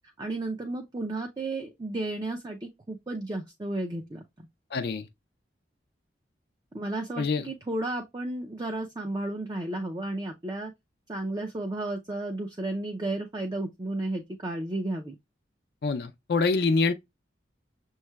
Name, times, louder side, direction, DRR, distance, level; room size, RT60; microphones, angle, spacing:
voice 1, 0.2-4.2 6.7-10.7 11.1-15.1, right 2 dB, 25° right, 0.5 m, -33 dB
voice 2, 4.7-5.1 7.2-7.5 15.8-16.9, left 4 dB, 60° left, 0.4 m, -25 dB
6.3 x 3.1 x 2.3 m
head